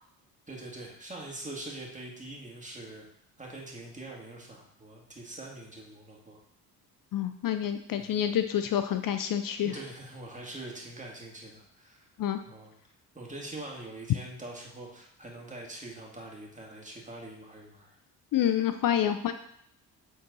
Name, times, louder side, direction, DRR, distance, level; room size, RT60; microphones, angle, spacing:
voice 1, 0.5-3.0 3.4-6.4 8.0-8.3 9.6-12.1 12.5-12.7 13.1-18.0, right 2 dB, 20° right, -1 dB, 2.2 m, -43 dB
voice 2, 7.1-9.8 12.2-12.4 18.3-19.3, left 10 dB, 55° left, 9 dB, 0.5 m, -28 dB
7.8 x 4.0 x 3.9 m, 0.70 s
supercardioid pair, 65°, 40 cm